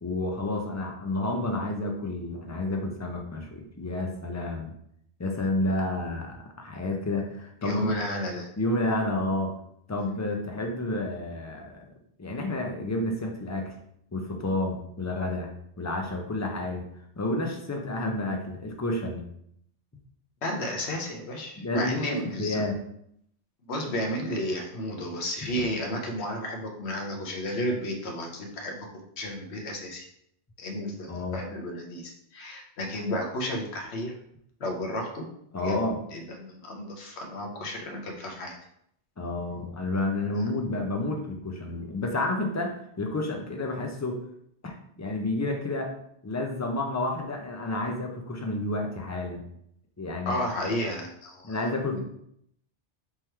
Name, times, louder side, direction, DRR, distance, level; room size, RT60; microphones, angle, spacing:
voice 1, 0.0-4.7 5.2-7.9 8.6-9.6 9.9-11.8 12.2-13.7 14.1-15.5 15.8-16.8 17.2-19.2 21.6-22.8 25.6-25.7 31.1-31.4 35.5-36.0 39.2-44.2 44.6-45.9 46.2-49.4 50.0-50.4 51.4-52.0, left 2 dB, 30° left, 2 dB, 0.3 m, -30 dB
voice 2, 7.6-8.5 20.4-22.6 23.7-28.9 29.2-30.1 30.6-34.1 34.6-35.3 35.5-35.8 36.1-38.6 50.3-51.6 51.9-52.0, left 1 dB, 70° left, 2 dB, 1.1 m, -32 dB
3.6 x 3.0 x 4.4 m, 0.72 s
omnidirectional pair, 1.2 m